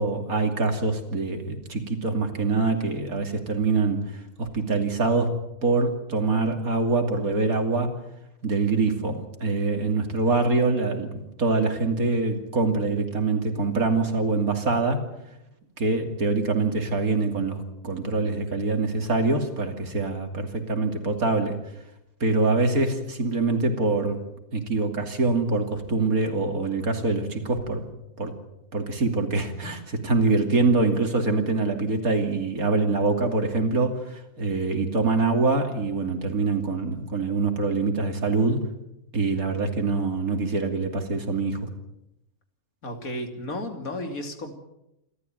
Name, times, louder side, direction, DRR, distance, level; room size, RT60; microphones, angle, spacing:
voice 1, 0.0-5.3 5.6-7.9 8.4-15.0 15.8-21.6 22.2-24.2 24.5-27.9 28.2-28.3 28.7-38.6 39.1-41.7, right 3 dB, 90° right, 5 dB, 3.2 m, -24 dB
voice 2, 42.8-44.5, left 1 dB, 80° left, 5 dB, 3.3 m, -33 dB
27.5 x 13.0 x 9.2 m, 0.88 s
omnidirectional pair, 1.5 m